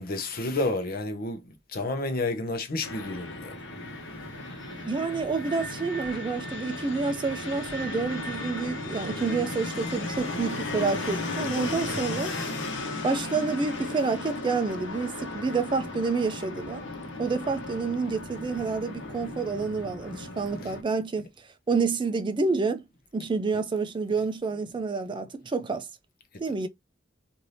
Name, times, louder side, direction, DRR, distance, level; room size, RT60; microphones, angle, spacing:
voice 1, 0.0-1.4 1.7-3.5 11.9-12.0, left 2 dB, 50° left, 0.7 m, -30 dB
Fixed-wing aircraft airplane, 2.8-20.8, left 2 dB, 70° left, 0.9 m, -35 dB
voice 2, 4.8-12.3 13.0-16.8 17.2-22.8 23.1-25.9 26.4-26.7, right 4 dB, 25° right, 0.4 m, -28 dB
2.7 x 2.6 x 3.2 m
head